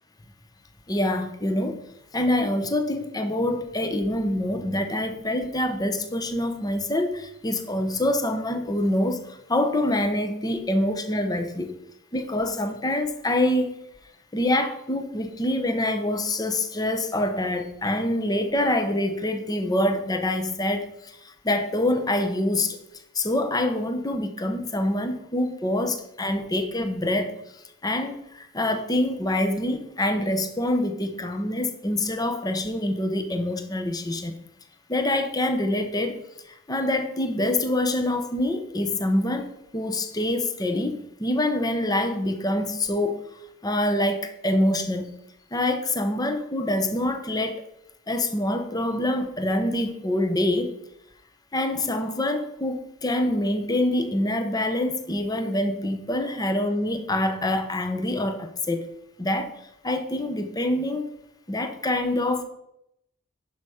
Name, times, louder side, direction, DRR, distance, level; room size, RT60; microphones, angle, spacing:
voice 1, 0.9-1.8 2.1-11.7 12.1-13.8 14.3-22.8 23.1-27.3 27.8-34.3 34.9-36.2 36.7-43.3 43.6-45.1 45.5-47.6 48.1-50.8 51.5-58.8 59.2-59.5 59.8-61.1 61.5-62.4, left 1 dB, 20° left, 7 dB, 0.7 m, -25 dB
11.0 x 5.6 x 4.9 m, 0.81 s
head